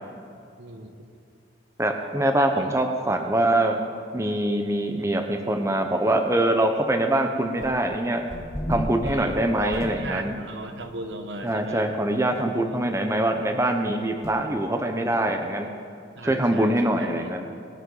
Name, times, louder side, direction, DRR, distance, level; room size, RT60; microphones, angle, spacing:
voice 1, 0.6-0.9 2.6-2.7 9.0-11.8 16.2-17.3, right 2 dB, 70° right, 6 dB, 1.1 m, -36 dB
voice 2, 1.8-3.8 4.1-8.2 8.7-10.3 11.4-15.7 16.2-17.5, right 1 dB, 15° right, 5 dB, 0.7 m, -24 dB
sound 1, 7.6-8.0 8.3-10.4 10.8-10.9 11.5-11.6 11.8-11.9 12.3-12.4 14.2-14.4, equal, 15° left, 1.0 m, -33 dB
20.0 x 10.5 x 3.9 m, 2.5 s
head